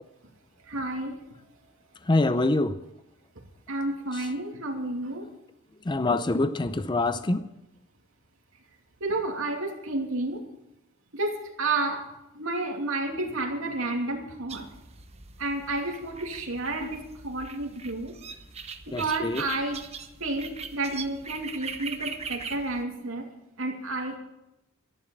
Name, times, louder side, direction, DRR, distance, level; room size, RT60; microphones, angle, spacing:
voice 1, 0.6-1.2 3.7-5.3 9.0-10.4 11.1-12.1 12.3-14.7 15.4-18.1 18.9-19.8 20.2-23.3 23.6-24.2, right 2 dB, 75° right, 2 dB, 2.8 m, -31 dB
voice 2, 2.1-2.8 5.9-7.4 18.9-19.4, left 2 dB, 20° left, 12 dB, 0.5 m, -25 dB
sound 1, 14.5-22.8, right 5 dB, 30° right, 1.0 m, -41 dB
13.5 x 11.5 x 7.2 m, 0.89 s
head